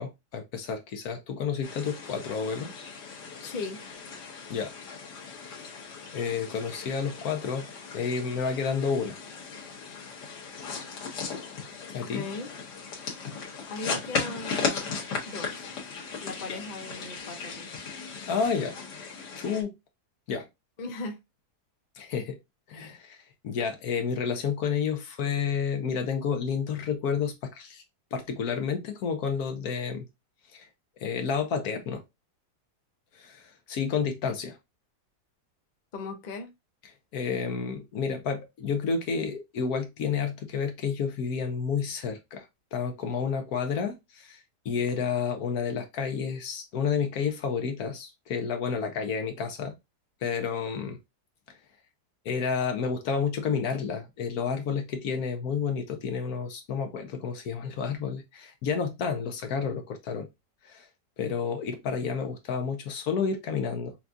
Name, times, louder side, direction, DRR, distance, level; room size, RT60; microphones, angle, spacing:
voice 1, 0.0-2.9 4.5-4.7 5.5-5.8 6.1-7.7 7.9-9.2 11.9-12.2 16.5-16.6 18.3-18.8 19.4-19.7 20.3-20.5 22.0-22.4 22.7-23.2 23.4-27.8 28.1-30.1 30.5-30.7 31.0-32.0 33.1-34.6 37.1-44.4 44.6-49.8 50.2-51.0 52.2-60.3 60.6-60.9 61.2-63.9, left 6 dB, 70° left, 1.2 m, -30 dB
sound 1, 1.6-19.6, left 5 dB, 90° left, 1.7 m, -37 dB
voice 2, 3.4-3.8 12.0-12.5 13.7-14.9 15.2-15.7 16.2-17.7 20.8-21.2 35.9-36.5, left 3 dB, 40° left, 0.7 m, -38 dB
5.8 x 2.3 x 2.6 m
omnidirectional pair, 1.7 m